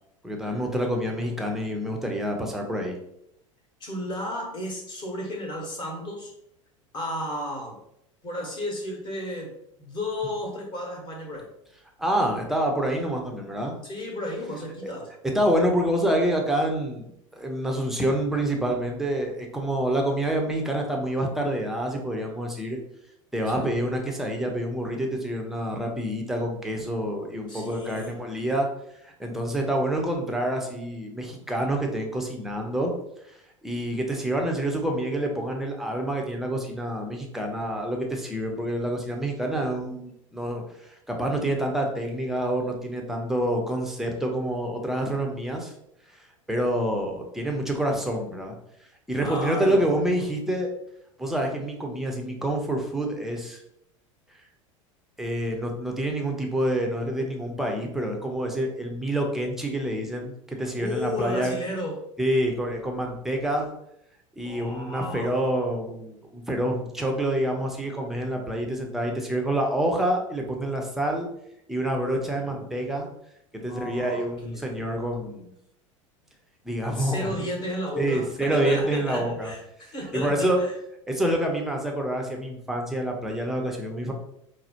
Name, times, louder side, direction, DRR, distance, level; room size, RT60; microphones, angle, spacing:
voice 1, 0.2-2.9 12.0-13.7 14.8-14.9 15.3-17.1 17.3-22.8 23.3-28.7 29.0-32.9 33.6-45.7 46.5-48.5 49.1-50.7 51.2-53.6 55.2-61.5 62.2-63.7 64.4-71.3 71.7-73.1 73.5-75.5 76.6-77.3 78.0-79.5 80.1-80.6 81.1-84.1, right 1 dB, ahead, 1 dB, 0.6 m, -27 dB
voice 2, 3.8-6.3 6.9-7.8 8.2-9.5 9.8-11.5 13.8-15.1 23.5-23.7 27.5-28.2 49.1-49.9 60.8-62.0 64.4-65.4 72.3-73.0 73.7-74.6 76.8-80.7, left 1 dB, 25° left, 0 dB, 1.0 m, -33 dB
4.7 x 2.0 x 2.8 m, 0.77 s
figure-of-eight pair, 80°, 17 cm